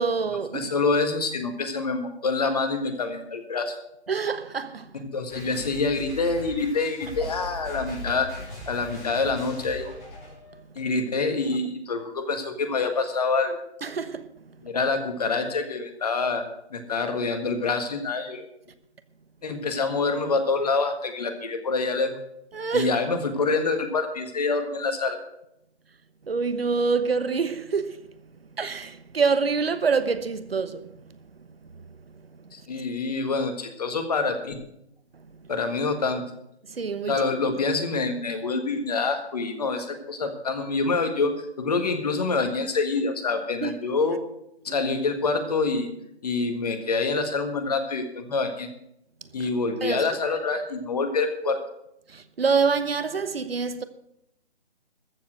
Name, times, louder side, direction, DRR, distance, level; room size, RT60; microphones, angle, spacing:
voice 1, 0.0-0.7 4.1-4.9 13.8-14.2 22.5-22.9 26.3-28.0 28.6-30.8 36.8-37.1 43.6-43.7 49.8-50.1 52.1-53.8, right 5 dB, 60° right, 1.1 m, -25 dB
voice 2, 0.5-3.8 4.9-8.3 8.7-9.9 10.8-13.6 14.6-18.4 19.4-22.2 22.7-25.2 32.5-34.6 35.5-36.2 37.0-44.2 44.6-45.9 46.2-48.7 49.3-51.6, left 4 dB, 35° left, 1.7 m, -26 dB
sound 1, 5.3-10.6, equal, 10° left, 5.1 m, -39 dB
14.0 x 7.4 x 7.7 m
figure-of-eight pair, 165°, 34 cm